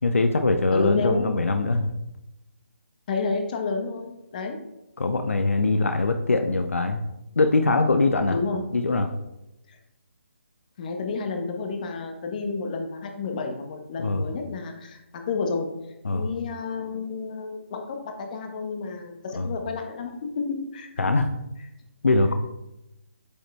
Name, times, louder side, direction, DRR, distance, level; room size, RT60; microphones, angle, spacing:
voice 1, 0.0-1.9 5.0-7.0 7.4-8.4 8.7-9.1 14.0-14.3 16.0-16.3 19.3-19.5 21.0-21.3 22.0-22.3, left 3 dB, 80° left, 8 dB, 0.7 m, -22 dB
voice 2, 0.7-1.5 3.1-4.6 8.3-8.6 10.8-15.7 16.1-21.1, left 4 dB, 35° left, 4 dB, 1.2 m, -30 dB
8.5 x 5.1 x 3.4 m, 0.90 s
figure-of-eight pair, 150°, 7 cm